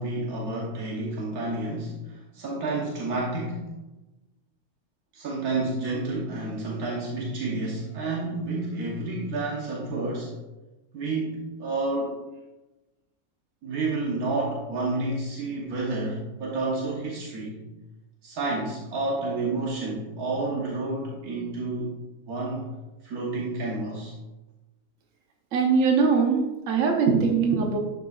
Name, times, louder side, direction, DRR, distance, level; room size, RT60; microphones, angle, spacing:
voice 1, 0.0-3.7 5.1-10.3 10.9-12.2 13.6-17.7 18.2-22.0 22.3-22.7 23.0-24.1, right 2 dB, 90° right, -3 dB, 1.6 m, -30 dB
voice 2, 25.5-27.8, right 5 dB, 65° right, 2 dB, 1.3 m, -22 dB
11.5 x 5.4 x 2.4 m, 1.1 s
omnidirectional pair, 1.5 m